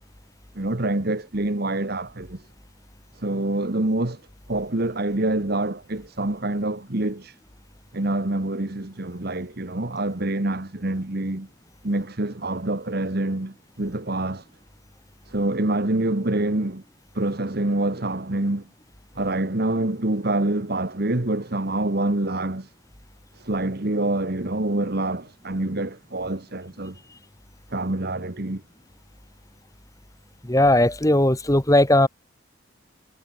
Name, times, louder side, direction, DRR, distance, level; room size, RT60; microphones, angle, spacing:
voice 1, 0.6-2.4 3.2-4.2 4.5-7.3 7.9-11.5 11.8-14.4 15.3-16.8 17.1-18.6 19.2-22.7 23.4-26.9 27.7-28.6, right 2 dB, 45° right, 1.4 m, -26 dB
voice 2, 30.5-32.1, left 1 dB, 15° left, 1.6 m, -18 dB
head